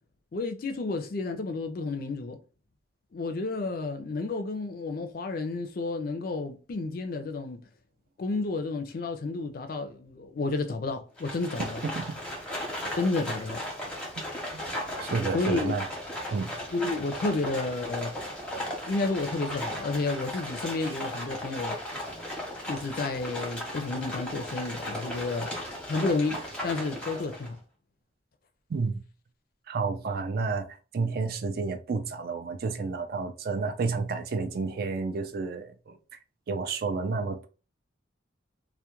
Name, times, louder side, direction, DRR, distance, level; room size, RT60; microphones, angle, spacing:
voice 1, 0.3-2.4 3.1-7.6 8.2-11.8 13.0-13.6 15.3-15.7 16.7-18.1 18.9-21.8 22.7-25.5 25.9-27.6, left 3 dB, 50° left, 0.4 m, -31 dB
Livestock farm animals working animals, 11.2-27.5, left 1 dB, 5° left, 0.7 m, -36 dB
voice 2, 11.8-12.2 15.0-15.9 16.3-16.5 28.7-29.0 29.7-36.2 36.5-37.5, right 4 dB, 50° right, 0.3 m, -31 dB
2.3 x 2.1 x 2.9 m
head